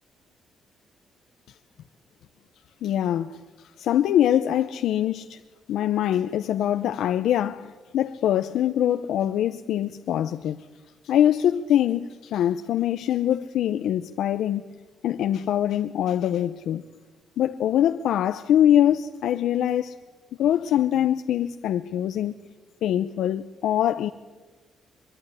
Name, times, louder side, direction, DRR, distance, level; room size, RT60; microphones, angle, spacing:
voice 1, 2.8-5.4 5.7-10.7 11.0-14.7 15.0-16.8 17.4-19.9 20.4-22.3 22.8-24.1, left 11 dB, 80° left, 0.9 m, -23 dB
24.0 x 23.0 x 9.9 m
cardioid pair, 90°, 0 cm